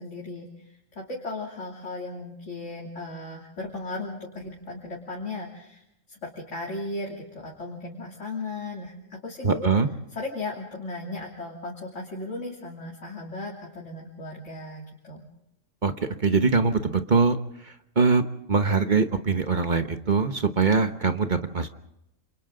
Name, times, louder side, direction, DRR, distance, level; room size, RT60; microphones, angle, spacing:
voice 1, 0.0-9.7 10.1-15.3, left 2 dB, 70° left, -3 dB, 3.2 m, -36 dB
voice 2, 9.4-9.9 15.8-17.4 18.0-21.7, right 4 dB, 40° right, 8 dB, 1.2 m, -22 dB
28.0 x 27.0 x 3.8 m, 0.81 s
omnidirectional pair, 1.3 m